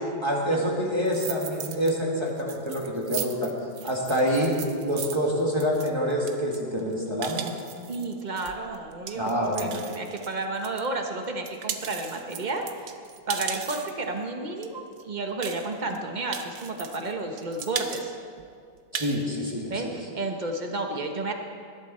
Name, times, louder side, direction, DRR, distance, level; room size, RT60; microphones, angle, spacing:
voice 1, 0.2-3.5 3.8-4.5 4.8-7.5 9.2-9.8 18.9-19.9, equal, 15° right, -3 dB, 1.8 m, -26 dB
sound 1, 1.1-1.9 2.3-10.9 11.2-14.1 14.6-14.7 14.9-15.0 15.4-16.0 16.3-17.1 17.4-18.0 18.4-18.5 18.8-19.2, right 9 dB, 65° right, 1.2 m, -37 dB
voice 2, 7.9-9.3 9.6-12.9 13.3-18.2 19.7-21.3, right 2 dB, 35° right, 3 dB, 0.8 m, -32 dB
19.5 x 11.5 x 4.3 m, 2.3 s
omnidirectional pair, 2.2 m